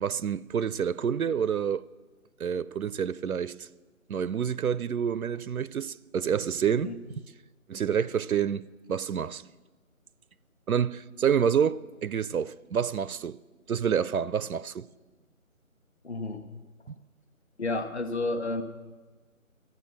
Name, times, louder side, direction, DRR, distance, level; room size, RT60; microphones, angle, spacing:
voice 1, 0.0-1.8 2.4-3.7 4.1-6.9 7.7-9.4 10.7-13.4 13.7-14.9 16.9-17.0, right 8 dB, 85° right, 0.5 m, -28 dB
voice 2, 16.0-16.5 17.6-18.6, left 2 dB, 50° left, 1.1 m, -31 dB
12.5 x 9.4 x 8.2 m
figure-of-eight pair, 155°, 42 cm